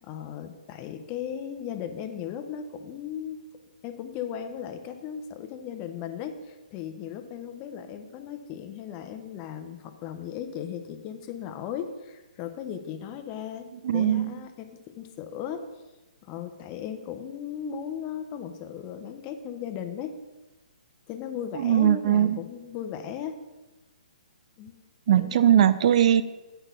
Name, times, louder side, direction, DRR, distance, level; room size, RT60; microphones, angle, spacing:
voice 1, 0.0-3.4 3.8-13.7 13.9-14.7 15.0-15.6 16.2-20.1 21.1-23.4 24.6-24.7 25.2-25.6, left 9 dB, 30° left, 7 dB, 0.8 m, -36 dB
voice 2, 13.8-14.3 21.6-22.4 25.1-26.2, right 10 dB, 50° right, 13 dB, 0.4 m, -20 dB
7.9 x 4.1 x 6.6 m, 1.1 s
hypercardioid pair, 140°, 4 cm